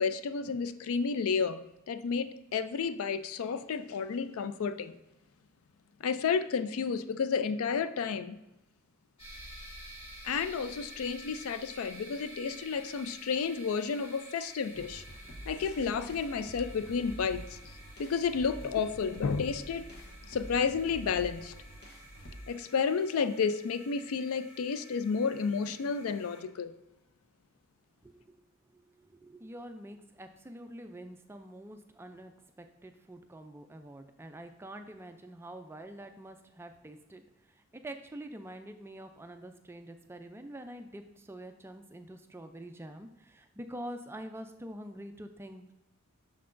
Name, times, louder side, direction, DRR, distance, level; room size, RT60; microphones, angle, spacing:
voice 1, 0.0-4.9 6.0-8.4 10.2-15.0 15.5-17.6 18.0-19.9 20.3-21.5 22.5-26.7, left 5 dB, 75° left, 12 dB, 0.4 m, -31 dB
sound 1, 9.2-26.4, right 1 dB, 25° left, 1.8 m, -51 dB
sound 2, 14.7-22.4, equal, 50° left, 1.0 m, -47 dB
voice 2, 28.0-28.4 28.7-45.7, right 1 dB, 10° right, 7 dB, 0.3 m, -46 dB
6.5 x 5.7 x 2.5 m, 0.97 s
head